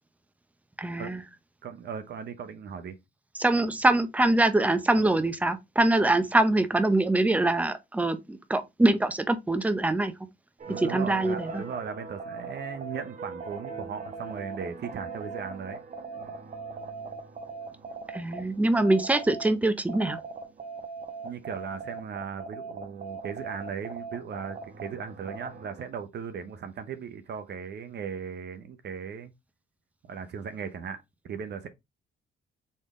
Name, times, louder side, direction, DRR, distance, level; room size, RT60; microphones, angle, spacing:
voice 1, 0.8-1.2 3.4-10.1 10.8-11.6 18.1-20.2, right 2 dB, 5° right, 0.7 m, -24 dB
voice 2, 1.6-3.0 10.7-15.8 21.2-29.3 30.1-31.7, right 6 dB, 60° right, 0.8 m, -37 dB
piano effrayant, 10.6-19.5 19.9-25.9, right 4 dB, 40° right, 1.1 m, -40 dB
4.3 x 3.4 x 3.6 m
cardioid pair, 90°, 20 cm